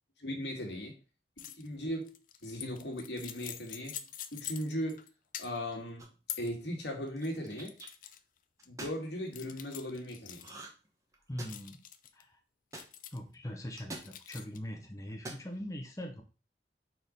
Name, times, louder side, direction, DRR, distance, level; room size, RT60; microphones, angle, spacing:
voice 1, 0.2-0.9 1.5-2.1 2.4-4.0 4.3-5.0 5.4-6.0 6.4-7.7 8.7-10.5, equal, 80° left, 0 dB, 1.9 m, -38 dB
sound 1, 1.4-1.7 2.0-5.1 5.3-5.8 6.3-6.5 7.1-8.2 8.6-8.7 9.3-10.5 11.5-12.2 12.7-13.3 13.9-14.6, left 11 dB, 50° left, 0.5 m, -45 dB
sound 2, 6.0-6.3 7.2-7.9 8.6-9.0 10.4-10.9 11.1-11.8 12.7-12.9 13.8-14.1 15.1-15.5, right 2 dB, 20° right, 1.0 m, -45 dB
voice 2, 11.3-11.8 12.1-12.4 13.1-16.2, equal, 20° left, 2 dB, 0.8 m, -41 dB
4.5 x 4.3 x 5.1 m, 0.33 s
head